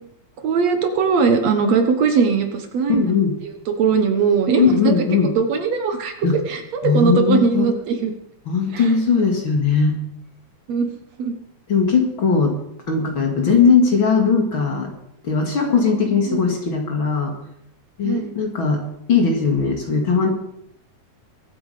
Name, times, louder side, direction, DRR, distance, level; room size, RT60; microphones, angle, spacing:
voice 1, 0.4-3.0 3.7-5.0 5.4-8.1 8.7-8.9 10.7-10.9 11.2-11.4 16.3-16.5 18.0-18.3, right 5 dB, 65° right, 6 dB, 2.3 m, -20 dB
voice 2, 2.9-3.3 4.6-5.3 6.2-6.4 6.8-7.7 8.5-10.0 11.7-12.6 12.9-14.9 15.2-17.3 18.0-18.8 19.1-20.3, left 5 dB, 45° left, 2 dB, 2.5 m, -18 dB
23.0 x 8.8 x 5.1 m, 0.74 s
omnidirectional pair, 3.5 m